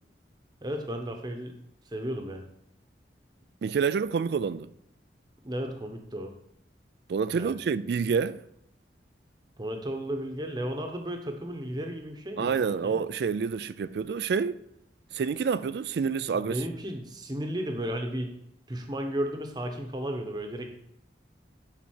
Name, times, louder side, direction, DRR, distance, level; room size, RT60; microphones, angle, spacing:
voice 1, 0.6-1.6 1.9-2.4 5.4-6.3 7.3-7.5 9.6-13.0 16.3-18.3 18.7-20.7, equal, 25° right, 0.9 m, -34 dB
voice 2, 3.6-4.7 7.1-8.4 12.4-14.6 15.1-16.6, right 6 dB, 65° right, 0.3 m, -28 dB
11.0 x 4.1 x 4.4 m
head